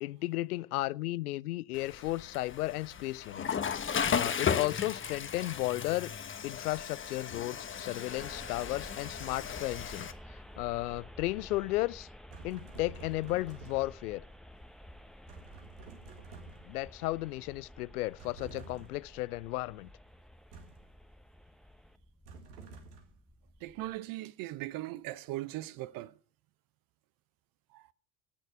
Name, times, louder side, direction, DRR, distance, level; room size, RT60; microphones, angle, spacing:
voice 1, 0.0-3.6 4.1-6.1 6.4-12.1 12.4-14.2 16.6-19.9, left 18 dB, 75° left, 0.5 m, -34 dB
Water / Toilet flush, 1.7-10.1, left 7 dB, 25° left, 1.1 m, -35 dB
sound 1, 8.1-24.0, equal, ahead, 1.1 m, -52 dB
sound 2, 12.3-14.1 15.3-16.9 18.2-19.1 20.5-20.9 22.3-23.2, right 4 dB, 75° right, 1.9 m, -50 dB
voice 2, 23.6-26.2 27.7-27.9, right 16 dB, 50° right, 0.7 m, -39 dB
17.0 x 6.5 x 7.8 m
figure-of-eight pair, 65°, 46 cm